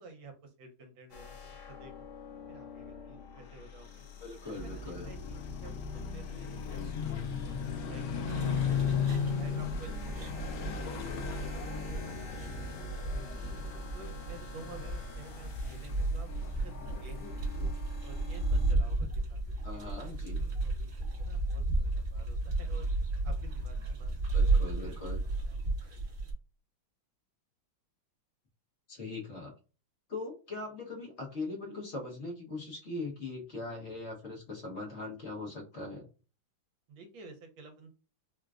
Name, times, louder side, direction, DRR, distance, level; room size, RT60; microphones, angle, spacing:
voice 1, 0.0-2.1 2.5-4.1 4.4-8.5 9.1-11.7 12.0-13.3 13.9-16.3 16.6-17.6 18.0-19.9 20.5-22.9 23.2-24.9 25.5-26.1 36.9-37.9, right 3 dB, 70° right, 5 dB, 1.5 m, -52 dB
sound 1, 1.1-18.7, left 6 dB, 65° left, 1.2 m, -47 dB
voice 2, 4.2-5.1 19.6-20.5 24.3-25.2 28.9-29.5 30.1-36.1, left 3 dB, 50° left, -2 dB, 0.8 m, -40 dB
sound 2, 4.6-17.7, left 5 dB, 90° left, 0.9 m, -37 dB
sound 3, 8.3-26.3, right 2 dB, 45° right, 0.7 m, -33 dB
3.7 x 2.2 x 2.4 m, 0.35 s
omnidirectional pair, 2.4 m